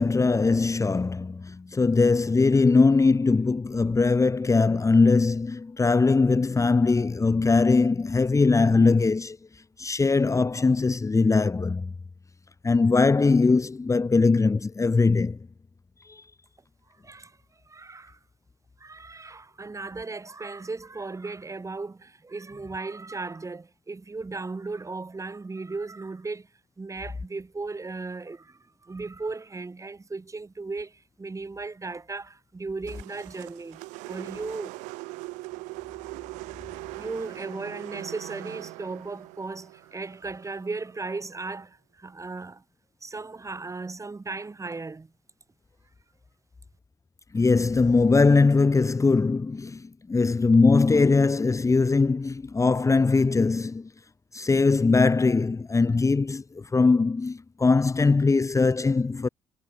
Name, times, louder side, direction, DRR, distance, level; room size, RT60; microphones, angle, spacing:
voice 1, 0.0-9.4 9.8-11.9 12.6-15.4 16.1-16.2 47.3-53.9 54.3-59.3, left 4 dB, 25° left, 1.4 m, -21 dB
voice 2, 17.0-17.4 17.7-18.2 18.8-26.5 26.8-34.8 37.0-42.6 43.0-45.1, right 3 dB, 25° right, 5.3 m, -36 dB
sound 1, 32.9-41.1, right 24 dB, 80° right, 6.2 m, -41 dB
hypercardioid pair, 60°, 12 cm